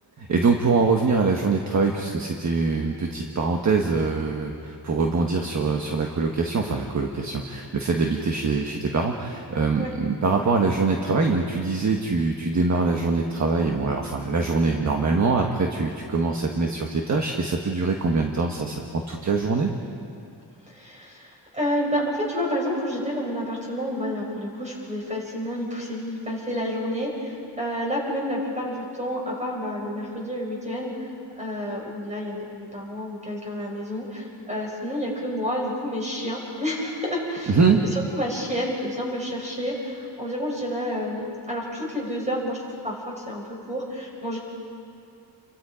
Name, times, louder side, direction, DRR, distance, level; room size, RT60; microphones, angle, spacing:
voice 1, 0.2-19.7 37.5-37.8, right 4 dB, 40° right, 2 dB, 1.4 m, -23 dB
voice 2, 20.7-31.1 31.4-37.6 38.1-42.6 42.8-44.4, equal, 15° right, -2 dB, 5.6 m, -29 dB
30.0 x 24.0 x 5.1 m, 2.4 s
wide cardioid pair, 170°, 42 cm